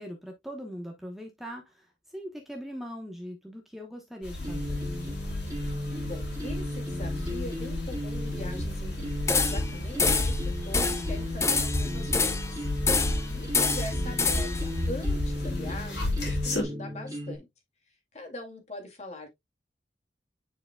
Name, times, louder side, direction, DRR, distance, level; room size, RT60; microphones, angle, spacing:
voice 1, 0.0-4.8, equal, ahead, 1.0 m, -41 dB
sound 1, 4.2-16.6, left 1 dB, 75° left, 3.4 m, -32 dB
sound 2, 4.4-17.4, left 1 dB, 20° right, 2.0 m, -36 dB
voice 2, 6.0-9.1 9.4-10.4 10.6-12.7 13.3-17.5 17.9-19.3, left 1 dB, 40° left, 2.3 m, -42 dB
sound 3, 9.3-9.7 10.0-10.4 10.7-11.1 11.4-12.5 12.9-13.3 13.5-14.6, left 4 dB, 15° left, 0.7 m, -26 dB
9.3 x 4.9 x 2.2 m
head